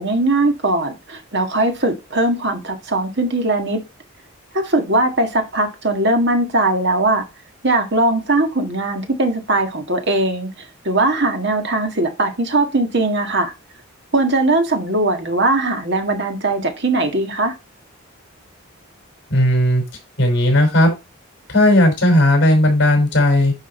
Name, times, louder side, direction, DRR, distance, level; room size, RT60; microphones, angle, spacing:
voice 1, 0.0-3.8 4.5-7.2 7.6-10.5 10.8-13.5 14.1-17.5, right 2 dB, 50° right, 1.7 m, -19 dB
voice 2, 19.3-19.8 20.2-20.9 21.5-23.5, left 1 dB, 55° left, 5.3 m, -15 dB
10.5 x 4.9 x 4.4 m
head